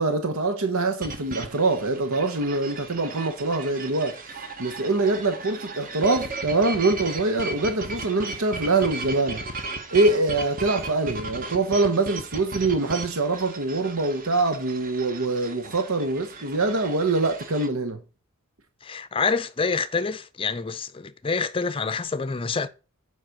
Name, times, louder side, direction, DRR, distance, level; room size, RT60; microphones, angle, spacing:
voice 1, 0.0-9.4 9.9-18.0, right 3 dB, 80° right, 1.0 m, -24 dB
sound 1, 1.0-17.7, right 3 dB, 40° right, 1.2 m, -36 dB
voice 2, 18.8-22.7, left 4 dB, 25° left, 0.6 m, -27 dB
7.4 x 4.9 x 6.5 m
head